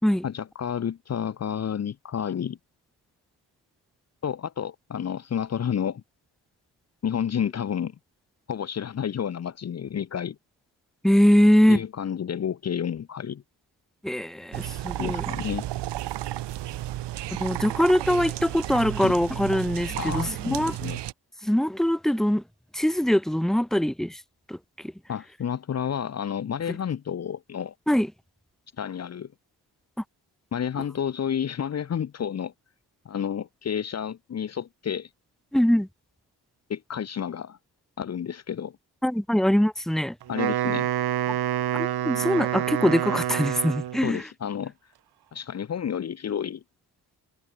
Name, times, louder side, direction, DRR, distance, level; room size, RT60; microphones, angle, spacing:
voice 1, 0.2-2.6 4.2-6.0 7.0-7.9 8.5-10.4 11.7-13.4 15.0-15.6 19.0-19.1 19.9-21.0 25.1-27.7 28.8-29.3 30.5-32.5 33.0-35.1 36.7-37.6 38.0-38.8 40.3-40.9 44.0-44.7 45.3-46.6, left 8 dB, 40° left, 1.5 m, -30 dB
voice 2, 11.0-11.8 14.0-15.2 17.3-20.8 21.4-22.4 22.7-24.2 24.5-24.6 27.9-28.1 35.5-35.9 39.0-40.1 41.7-44.2, equal, ahead, 2.2 m, -22 dB
sound 1, 14.5-21.1, right 14 dB, 85° right, 1.5 m, -33 dB
Wind instrument woodwind instrument, 40.2-44.1, right 12 dB, 65° right, 2.4 m, -27 dB
wide cardioid pair, 175°, 41 cm